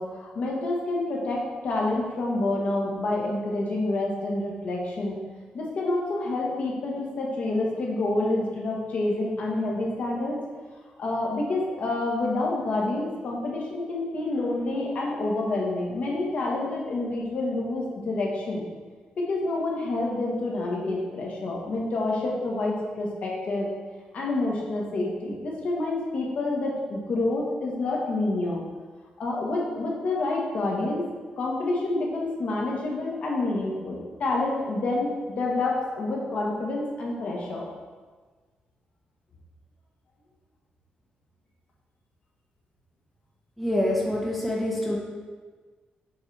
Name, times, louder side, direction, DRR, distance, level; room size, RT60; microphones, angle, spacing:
voice 1, 0.0-5.2 5.5-10.4 11.0-18.6 19.2-23.7 24.1-28.6 29.2-31.0 31.4-37.6, left 2 dB, 55° left, -2 dB, 1.3 m, -28 dB
voice 2, 43.6-45.0, left 1 dB, ahead, -3 dB, 0.7 m, -26 dB
7.3 x 4.8 x 3.3 m, 1.4 s
wide cardioid pair, 160°, 3 cm